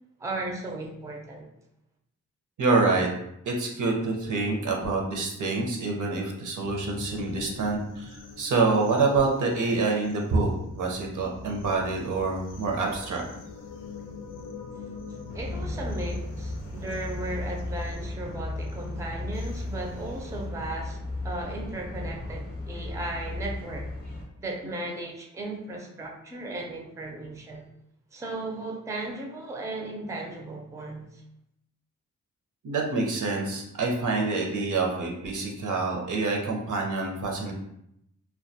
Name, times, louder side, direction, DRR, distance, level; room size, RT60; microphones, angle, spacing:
voice 1, 0.2-1.5 14.8-21.0 21.2-23.9 24.4-27.6 28.1-31.2, right 2 dB, 10° right, 1 dB, 0.4 m, -36 dB
voice 2, 2.6-3.1 3.5-10.5 10.8-13.2 32.6-37.5, right 3 dB, 70° right, 1 dB, 0.6 m, -26 dB
sound 1, 6.6-20.5, left 4 dB, 85° left, 0.5 m, -44 dB
sound 2, 15.3-24.3, left 2 dB, 30° left, 0.6 m, -35 dB
2.2 x 2.2 x 2.6 m, 0.77 s
cardioid pair, 75°, 31 cm